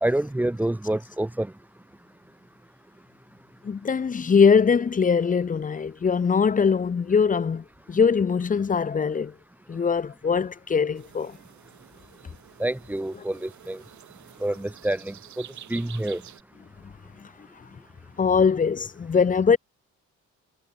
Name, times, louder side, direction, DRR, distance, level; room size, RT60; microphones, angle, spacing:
voice 1, 0.0-1.5 12.6-13.8 14.4-15.4 15.7-16.2, right 1 dB, 5° right, 0.7 m, -27 dB
voice 2, 3.6-9.3 9.7-11.3 17.2-17.3 18.2-19.6, left 6 dB, 25° left, 0.7 m, -22 dB
sound 1, 10.9-16.4, right 11 dB, 70° right, 7.0 m, -49 dB
cardioid pair, 90°, 30 cm